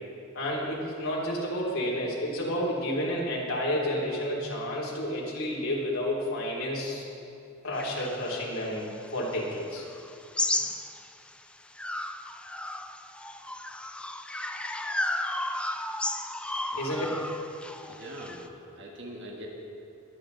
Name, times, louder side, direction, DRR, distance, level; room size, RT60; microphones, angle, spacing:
voice 1, 0.3-7.0 7.6-9.8 16.8-17.1, equal, 85° left, -4 dB, 3.0 m, -30 dB
sound 1, 7.8-11.3 11.7-18.5, left 1 dB, 5° left, 0.4 m, -34 dB
voice 2, 17.8-19.5, equal, 60° right, -1 dB, 1.6 m, -43 dB
22.0 x 8.7 x 3.9 m, 2.6 s
head